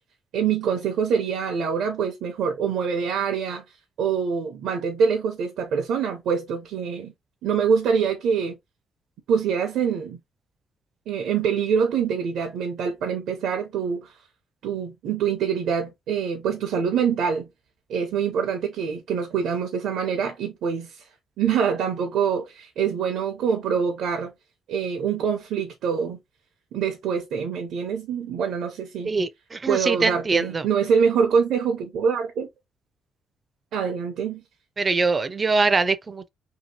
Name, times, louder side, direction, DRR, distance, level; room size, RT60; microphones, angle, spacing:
voice 1, 0.3-3.6 4.0-7.1 7.4-8.6 9.3-10.2 11.1-14.1 14.6-17.5 17.9-21.0 21.4-24.3 24.7-26.2 26.7-29.1 29.7-32.5 33.7-34.4, right 6 dB, 80° right, 0.6 m, -25 dB
voice 2, 29.0-30.6 34.8-36.3, right 3 dB, 30° right, 0.4 m, -23 dB
2.8 x 2.7 x 2.7 m
cardioid pair, 90°, 0 cm